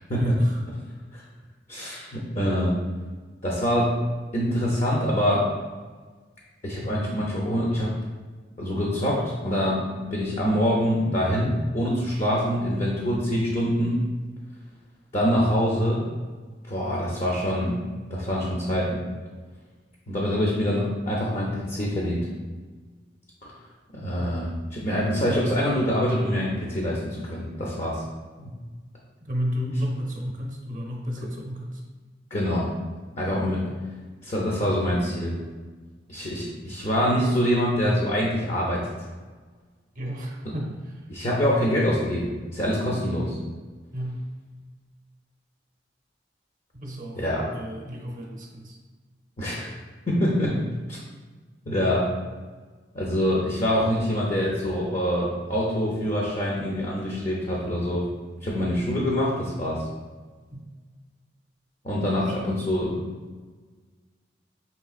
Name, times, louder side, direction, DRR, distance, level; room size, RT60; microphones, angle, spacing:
voice 1, 0.2-0.6 29.2-31.8 39.9-40.9 43.9-44.2 46.7-47.2 47.5-48.8 60.5-60.6, equal, 50° right, 0 dB, 0.7 m, -32 dB
voice 2, 1.7-2.8 3.4-3.9 4.3-5.5 6.6-7.9 8.6-9.8 10.1-14.0 15.1-16.1 16.7-17.8 18.1-19.0 20.1-22.3 23.9-28.0 28.4-28.5 32.3-32.7 33.2-33.7 34.2-35.4 36.1-38.8 40.4-40.5 41.1-43.4 47.1-47.5 49.4-49.7 50.1-50.6 50.9-51.0 51.7-52.1 52.9-58.0 58.4-59.8 61.8-63.0, equal, 40° left, -4 dB, 0.6 m, -25 dB
5.8 x 3.2 x 2.4 m, 1.4 s
head